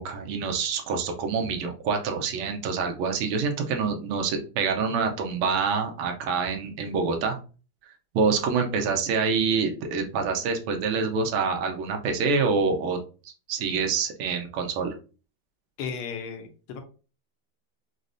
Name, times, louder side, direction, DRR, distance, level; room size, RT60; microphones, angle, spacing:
voice 1, 0.0-7.4 8.1-13.0 13.2-15.0, right 5 dB, 90° right, 4 dB, 1.6 m, -26 dB
voice 2, 15.8-16.8, left 6 dB, 80° left, 5 dB, 1.6 m, -35 dB
5.0 x 2.0 x 2.5 m, 0.35 s
omnidirectional pair, 2.4 m